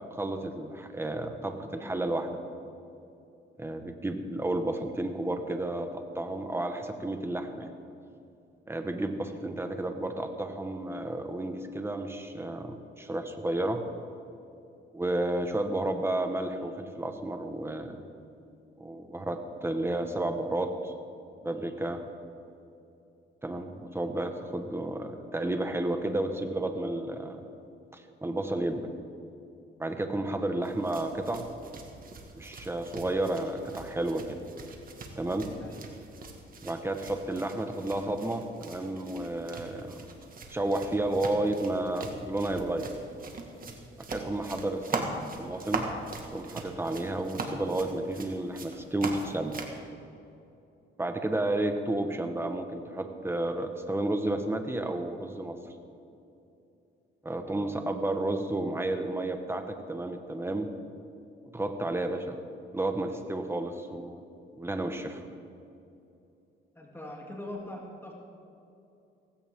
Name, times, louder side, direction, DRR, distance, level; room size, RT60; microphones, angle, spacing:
voice 1, 0.0-2.4 3.6-7.7 8.7-13.8 14.9-18.0 18.8-20.9 21.4-22.0 23.4-27.4 27.9-28.9 29.8-31.5 32.3-34.4 35.2-35.5 36.6-40.1 40.5-42.9 44.1-45.1 45.4-45.9 46.3-49.5 51.0-55.6 57.2-60.7 61.5-62.4 62.7-64.2 64.5-65.2, right 1 dB, 10° right, 6 dB, 1.5 m, -32 dB
sound 1, 30.6-49.8, right 3 dB, 45° right, 2.0 m, -41 dB
voice 2, 66.7-68.2, left 1 dB, 10° left, -2 dB, 3.0 m, -42 dB
17.0 x 16.0 x 3.8 m, 2.8 s
cardioid pair, 90°, 20 cm